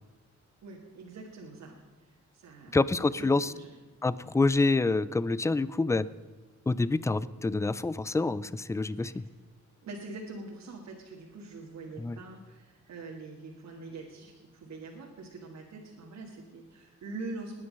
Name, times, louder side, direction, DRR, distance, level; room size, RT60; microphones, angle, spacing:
voice 1, 0.6-1.8 2.3-2.8 3.2-3.7 8.8-9.1 9.8-17.6, right 3 dB, 70° right, -2 dB, 2.2 m, -44 dB
voice 2, 2.7-3.5 4.0-6.1 6.7-9.2 12.0-12.2, left 3 dB, 10° left, 18 dB, 0.4 m, -27 dB
20.0 x 9.8 x 5.4 m, 1.3 s
wide cardioid pair, 145°, 29 cm